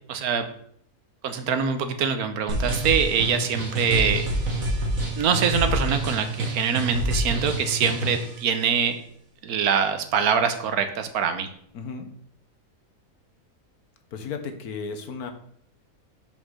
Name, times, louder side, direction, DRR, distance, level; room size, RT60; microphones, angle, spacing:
voice 1, 0.1-0.5 1.2-4.3 5.2-9.0 9.4-11.5, right 7 dB, 85° right, 9 dB, 1.3 m, -24 dB
sound 1, 2.5-8.3, right 1 dB, 65° right, 2.1 m, -27 dB
voice 2, 11.7-12.1 14.1-15.3, left 5 dB, 85° left, 6 dB, 1.5 m, -34 dB
5.4 x 5.1 x 6.2 m, 0.67 s
omnidirectional pair, 1.5 m